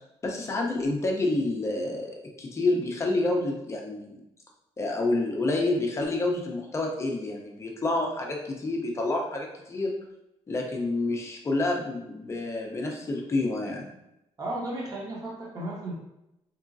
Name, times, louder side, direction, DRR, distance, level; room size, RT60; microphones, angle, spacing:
voice 1, 0.2-4.2 4.8-9.9 10.5-13.9, left 2 dB, 25° left, 0 dB, 0.5 m, -28 dB
voice 2, 14.4-15.9, right 1 dB, 30° right, -4 dB, 0.9 m, -34 dB
3.6 x 3.0 x 2.5 m, 0.88 s
wide cardioid pair, 165°, 12 cm